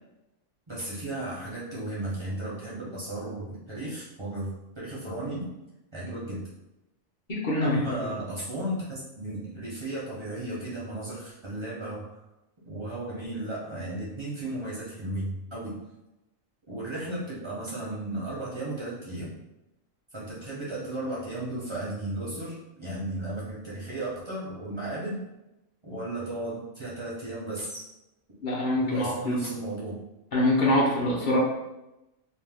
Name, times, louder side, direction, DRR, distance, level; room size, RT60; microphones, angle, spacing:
voice 1, 0.7-5.5 5.9-6.5 7.6-12.2 12.6-15.8 16.7-19.4 20.1-25.2 25.8-27.9 28.8-30.0, right 1 dB, 35° right, -7 dB, 0.4 m, -35 dB
voice 2, 7.3-8.0 28.4-29.4 30.3-31.4, left 1 dB, 50° left, -4 dB, 0.6 m, -24 dB
2.5 x 2.1 x 3.3 m, 0.94 s
omnidirectional pair, 1.4 m